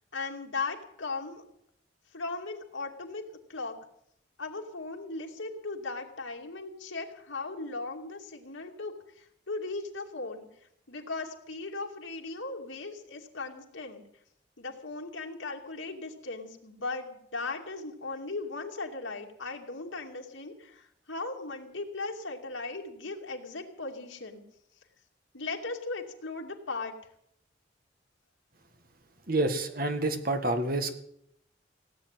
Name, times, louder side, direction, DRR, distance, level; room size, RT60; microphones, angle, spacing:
voice 1, 0.1-1.4 2.1-3.2 3.5-3.8 4.4-10.5 10.9-14.0 14.6-24.4 25.3-26.9, left 3 dB, 85° left, 2 dB, 2.6 m, -37 dB
voice 2, 29.3-30.9, right 2 dB, 50° right, 7 dB, 1.8 m, -28 dB
17.5 x 8.7 x 9.2 m, 0.73 s
head